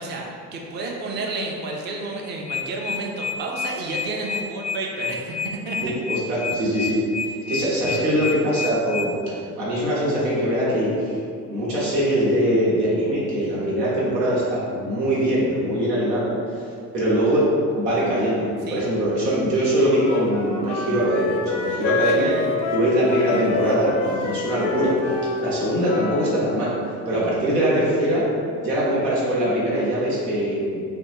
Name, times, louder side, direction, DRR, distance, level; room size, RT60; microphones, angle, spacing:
voice 1, 0.0-5.9 18.7-18.8 21.8-22.5, right 2 dB, 25° right, -1 dB, 0.4 m, -31 dB
sound 1, 2.5-9.1, left 7 dB, 85° left, 0.8 m, -29 dB
voice 2, 5.8-7.0 7.2-9.1 9.6-11.2 11.5-16.3 16.9-17.5 17.8-22.3 22.7-25.1 25.4-26.7 27.1-28.2 28.6-30.8, equal, 85° right, -7 dB, 0.9 m, -22 dB
Wind instrument woodwind instrument, 19.9-26.3, left 3 dB, 40° left, 0.4 m, -27 dB
3.4 x 2.1 x 3.0 m, 2.4 s
hypercardioid pair, 55°, 47 cm